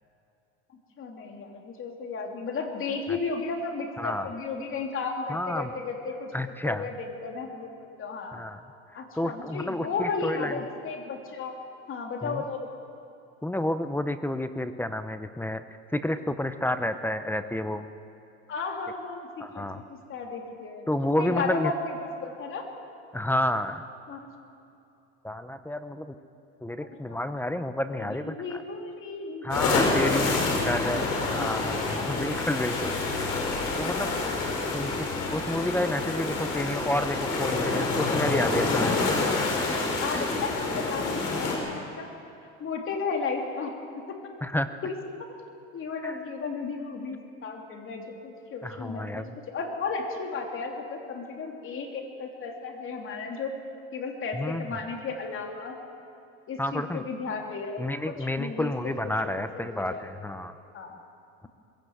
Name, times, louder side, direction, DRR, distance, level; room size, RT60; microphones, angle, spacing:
voice 1, 1.0-6.3 6.6-8.4 8.9-11.5 11.9-12.7 18.5-20.9 21.2-22.6 24.1-24.3 26.8-27.2 27.9-31.5 31.9-32.3 33.8-34.2 40.0-42.1 42.6-43.7 44.1-44.2 44.8-44.9 45.7-53.5 53.9-55.7 56.5-60.1 60.7-61.0, left 4 dB, 40° left, 2 dB, 3.2 m, -34 dB
voice 2, 4.0-4.3 5.3-5.7 6.3-6.9 8.3-8.6 9.2-10.6 12.2-12.4 13.4-15.6 15.9-17.8 19.4-19.8 20.9-21.7 23.1-23.9 25.2-26.1 26.6-28.6 29.4-33.5 33.8-34.1 34.4-39.0 40.1-40.4 44.4-44.8 46.0-46.3 48.6-49.3 54.3-54.8 56.6-57.0 57.8-60.5, left 1 dB, 5° left, 11 dB, 0.7 m, -30 dB
sound 1, 29.5-41.6, left 3 dB, 75° left, 5.4 m, -27 dB
21.0 x 17.0 x 8.1 m, 2.7 s
cardioid pair, 130°, 33 cm